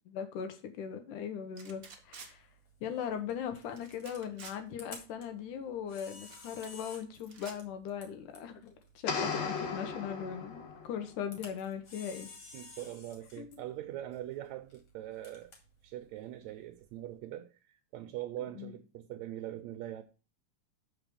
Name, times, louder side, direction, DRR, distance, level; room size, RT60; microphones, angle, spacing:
voice 1, 0.1-2.5 2.8-8.7 9.0-12.3 13.4-13.6 18.6-18.7, left 8 dB, 90° left, 2.6 m, -39 dB
sound 1, 1.6-2.3 3.8-4.6 6.3-7.0 7.3-7.6, right 5 dB, 55° right, 0.9 m, -50 dB
Camera, 1.7-17.2, left 3 dB, 45° left, 2.7 m, -55 dB
sound 2, 9.1-11.0, left 5 dB, 60° left, 2.6 m, -36 dB
voice 2, 12.5-15.5 15.8-20.0, right 13 dB, 75° right, 1.8 m, -42 dB
6.6 x 5.0 x 6.7 m
omnidirectional pair, 3.5 m